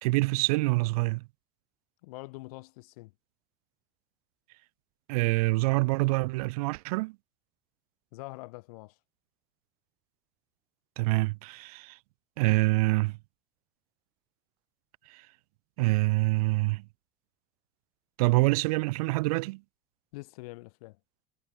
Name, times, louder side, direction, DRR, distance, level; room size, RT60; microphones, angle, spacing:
voice 1, 0.0-1.2 5.1-7.1 11.0-12.0 12.4-13.2 15.1-15.2 15.8-16.8 18.2-19.6, right 23 dB, 80° right, 1.6 m, -26 dB
voice 2, 2.0-3.1 8.1-9.0 20.1-21.0, left 23 dB, 80° left, 6.6 m, -44 dB
cardioid pair, 170°, 19 cm